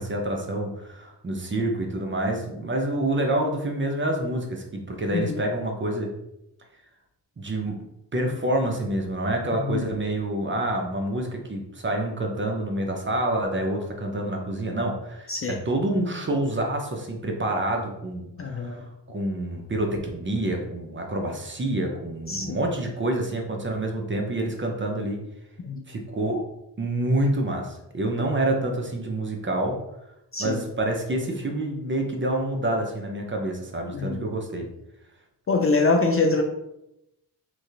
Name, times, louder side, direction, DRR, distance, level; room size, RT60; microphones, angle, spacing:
voice 1, 0.0-6.1 7.4-7.9 8.1-25.2 25.9-26.4 26.8-29.8 30.4-34.7, right 1 dB, 30° right, 2 dB, 0.7 m, -27 dB
voice 2, 18.4-18.8 22.3-22.6 25.6-25.8 30.3-30.6 33.9-34.2 35.5-36.4, left 3 dB, 35° left, 3 dB, 0.4 m, -24 dB
3.0 x 2.7 x 2.5 m, 0.85 s
cardioid pair, 55°, 41 cm